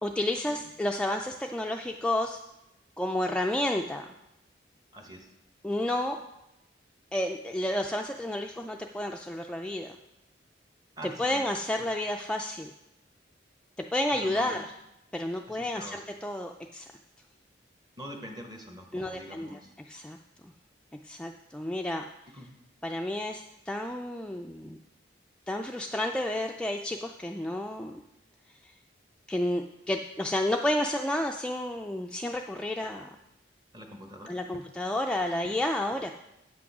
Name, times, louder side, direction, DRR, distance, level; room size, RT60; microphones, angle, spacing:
voice 1, 0.0-2.4 3.0-4.1 5.6-6.2 7.1-10.0 11.2-12.7 13.9-14.6 15.1-16.9 18.9-19.6 19.9-20.2 20.4-20.5 21.0-22.0 22.8-24.8 25.5-28.0 28.6-28.7 29.3-33.1 34.3-36.1, left 1 dB, 5° left, 2 dB, 0.3 m, -31 dB
voice 2, 4.9-5.3 11.0-11.5 11.8-11.9 14.1-14.7 15.5-16.0 18.0-19.7 22.3-22.5 32.8-32.9 33.7-34.6 35.4-35.6, equal, 25° right, 3 dB, 1.2 m, -45 dB
8.3 x 6.1 x 6.0 m, 0.90 s
head